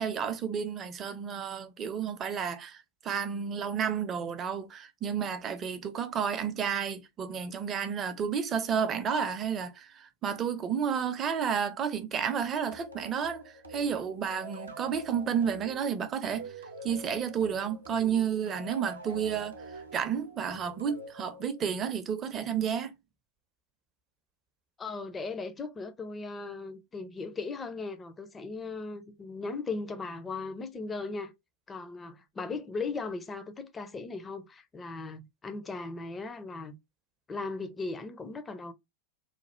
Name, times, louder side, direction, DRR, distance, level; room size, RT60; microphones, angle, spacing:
voice 1, 0.0-13.4 13.7-16.5 16.8-19.5 19.9-22.9, right 7 dB, 25° right, 0.6 m, -31 dB
sound 1, 12.7-21.9, right 2 dB, 70° right, 0.7 m, -46 dB
voice 2, 24.8-31.3 31.7-36.7 37.3-38.7, left 3 dB, 15° left, 0.6 m, -37 dB
3.2 x 2.3 x 4.2 m
figure-of-eight pair, 90°, 0 cm